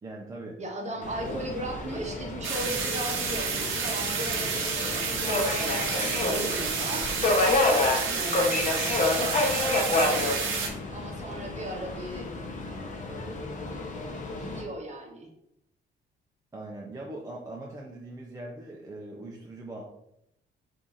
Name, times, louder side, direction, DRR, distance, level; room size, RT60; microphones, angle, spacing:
voice 1, 0.0-0.6 0.9-1.4 16.5-19.8, right 2 dB, 15° right, -2 dB, 0.5 m, -41 dB
voice 2, 0.6-7.1 7.4-10.3 10.9-12.3 14.3-15.3, right 1 dB, 35° right, 1 dB, 0.9 m, -37 dB
Subway metro underground, 1.0-14.6, left 2 dB, 40° left, 0.7 m, -29 dB
sound 1, 2.4-10.7, right 5 dB, 85° right, 0.6 m, -30 dB
2.9 x 2.6 x 3.8 m, 0.78 s
cardioid pair, 90°, 20 cm